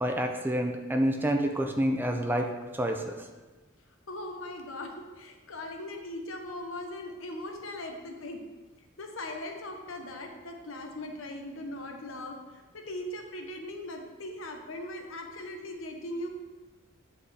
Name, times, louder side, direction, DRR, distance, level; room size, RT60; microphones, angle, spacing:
voice 1, 0.0-3.2, equal, 10° right, 3 dB, 0.4 m, -28 dB
voice 2, 4.1-8.4 9.0-16.3, left 1 dB, 75° left, 3 dB, 0.9 m, -39 dB
8.5 x 5.0 x 3.3 m, 1.2 s
head